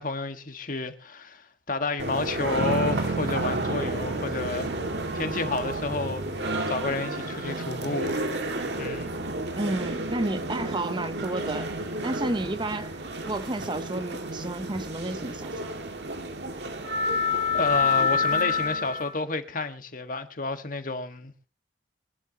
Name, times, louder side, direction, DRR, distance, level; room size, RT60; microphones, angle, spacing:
voice 1, 0.0-4.7 5.1-8.3 8.8-9.1 17.5-21.3, left 3 dB, 50° left, 1.6 m, -31 dB
sound 1, 2.0-19.1, left 1 dB, 70° right, 2.1 m, -30 dB
Bass guitar, 2.6-7.0, right 3 dB, 90° right, 0.8 m, -34 dB
voice 2, 9.5-11.7 12.0-15.6, right 2 dB, 25° right, 0.9 m, -31 dB
24.0 x 11.5 x 2.9 m
head